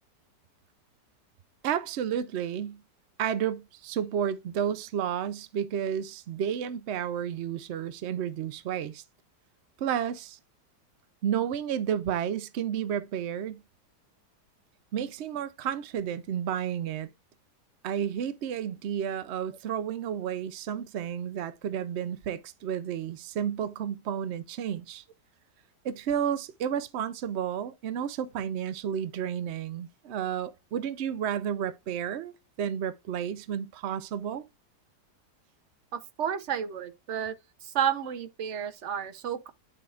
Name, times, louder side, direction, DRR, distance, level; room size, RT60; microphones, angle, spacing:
voice 1, 1.6-2.8 3.2-9.0 9.8-10.4 11.2-13.6 14.9-17.1 17.8-25.0 25.8-34.4, right 9 dB, 80° right, 0.6 m, -31 dB
voice 2, 35.9-37.4 37.6-39.5, right 9 dB, 55° right, 0.9 m, -31 dB
8.9 x 6.2 x 2.4 m
omnidirectional pair, 1.8 m